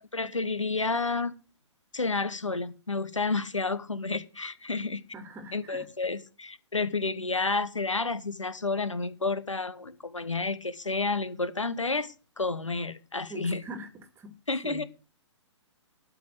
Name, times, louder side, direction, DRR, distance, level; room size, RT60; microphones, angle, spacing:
voice 1, 0.1-1.3 1.9-5.0 5.5-13.6 14.5-14.8, left 3 dB, 85° left, 1.1 m, -30 dB
voice 2, 5.1-5.9 13.3-14.3 14.6-14.8, right 2 dB, 15° right, 1.7 m, -43 dB
12.5 x 5.3 x 7.7 m
figure-of-eight pair, 125°, 16 cm